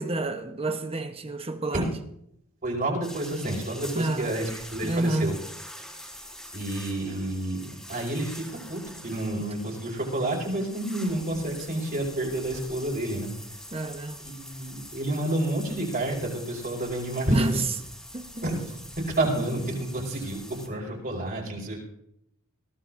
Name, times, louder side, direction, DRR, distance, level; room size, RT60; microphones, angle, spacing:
voice 1, 0.0-1.9 3.9-4.3 4.8-5.4 13.7-14.2 17.3-17.6 18.1-18.4, right 2 dB, 25° right, 1.0 m, -29 dB
voice 2, 2.6-5.3 6.5-13.3 14.2-17.6 18.4-21.8, right 1 dB, 45° right, 5.1 m, -29 dB
sound 1, 3.0-20.7, equal, 5° left, 3.3 m, -44 dB
21.5 x 16.0 x 2.6 m
head